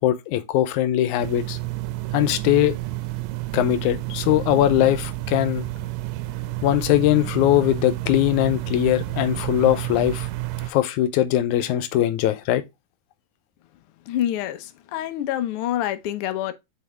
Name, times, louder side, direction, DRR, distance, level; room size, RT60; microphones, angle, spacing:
voice 1, 0.0-1.6 2.1-2.7 3.5-5.7 6.6-10.3 10.7-12.6, left 13 dB, 90° left, 2.1 m, -21 dB
sound 1, 1.2-10.7, right 17 dB, 80° right, 1.8 m, -30 dB
voice 2, 14.1-16.5, left 12 dB, 65° left, 1.4 m, -27 dB
7.3 x 4.1 x 3.4 m
omnidirectional pair, 3.4 m